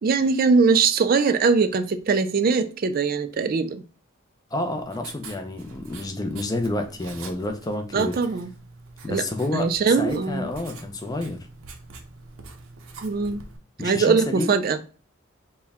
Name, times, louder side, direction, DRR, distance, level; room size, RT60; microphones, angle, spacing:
voice 1, 0.0-3.8 7.9-8.5 9.1-9.2 9.5-10.5 13.0-13.4 13.8-14.8, right 5 dB, 45° right, 0.3 m, -21 dB
voice 2, 4.5-8.2 9.0-11.5 13.8-14.5, left 2 dB, 20° left, 0.4 m, -29 dB
Writing, 4.6-13.6, right 3 dB, 90° right, 0.7 m, -44 dB
4.3 x 2.2 x 3.5 m
head